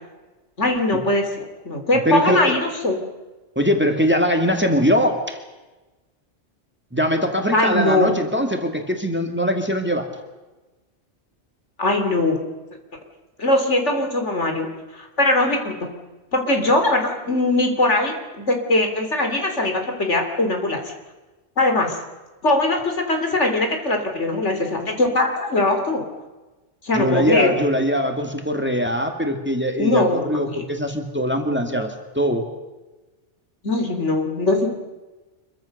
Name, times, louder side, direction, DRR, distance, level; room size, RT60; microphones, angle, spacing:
voice 1, 0.6-3.0 7.5-8.1 11.8-12.4 13.4-14.7 14.9-15.9 16.3-20.8 21.6-22.0 22.4-26.0 26.8-27.5 29.8-30.6 33.6-34.7, left 2 dB, 70° left, 4 dB, 3.6 m, -21 dB
voice 2, 2.1-2.5 3.6-5.4 6.9-10.1 26.9-32.5, equal, 10° right, 4 dB, 2.3 m, -21 dB
26.0 x 23.0 x 6.6 m, 1.2 s
omnidirectional pair, 1.2 m